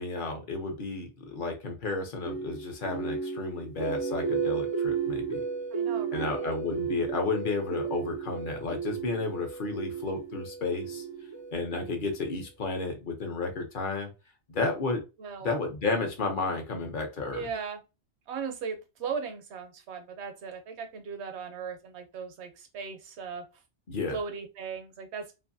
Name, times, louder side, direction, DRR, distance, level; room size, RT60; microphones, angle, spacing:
voice 1, 0.0-5.4 6.1-11.0 11.5-14.1 14.5-15.0 15.4-17.5 23.9-24.2, left 3 dB, 50° left, 3 dB, 0.8 m, -32 dB
sound 1, 2.2-12.3, right 6 dB, 45° right, 0.3 m, -33 dB
voice 2, 5.7-6.5 15.2-15.5 17.3-17.8 18.3-23.5 24.1-25.3, right 6 dB, 70° right, 7 dB, 0.9 m, -37 dB
2.6 x 2.5 x 2.6 m, 0.27 s
omnidirectional pair, 1.2 m